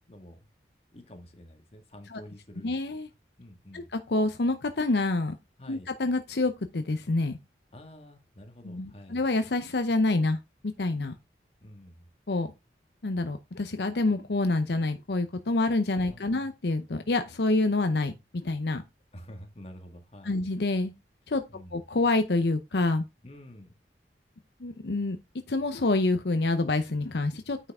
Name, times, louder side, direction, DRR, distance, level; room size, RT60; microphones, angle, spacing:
voice 1, 0.1-0.4 0.9-2.7 3.4-3.9 5.6-5.9 7.7-9.2 11.6-12.1 16.0-16.5 19.1-20.5 21.5-21.8 23.2-23.7, equal, 35° left, 1.9 m, -48 dB
voice 2, 2.6-3.1 3.7-5.3 5.7-7.4 8.6-10.4 10.8-11.1 12.3-12.5 13.0-18.8 20.2-20.9 21.3-21.4 21.7-23.0 24.6-25.2 25.5-27.6, left 2 dB, 70° left, 0.7 m, -27 dB
9.5 x 5.7 x 3.6 m
head